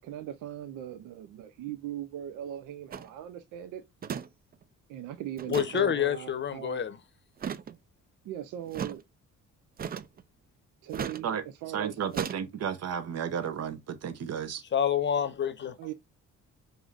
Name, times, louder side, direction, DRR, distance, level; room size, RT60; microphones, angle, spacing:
voice 1, 0.0-3.8 4.9-6.8 8.2-9.0 10.8-12.2 15.8-15.9, right 11 dB, 85° right, 0.5 m, -39 dB
sound 1, 2.9-3.1 4.0-4.3 4.5-4.6 5.4-5.8 7.4-7.8 8.7-9.0 9.8-10.2 10.9-11.2 12.1-12.4, right 7 dB, 30° right, 0.4 m, -35 dB
voice 2, 5.5-7.0 14.7-15.8, left 8 dB, 40° left, 0.7 m, -27 dB
voice 3, 11.7-14.6, right 8 dB, 55° right, 0.8 m, -33 dB
4.8 x 2.6 x 2.4 m
cardioid pair, 90°, 30 cm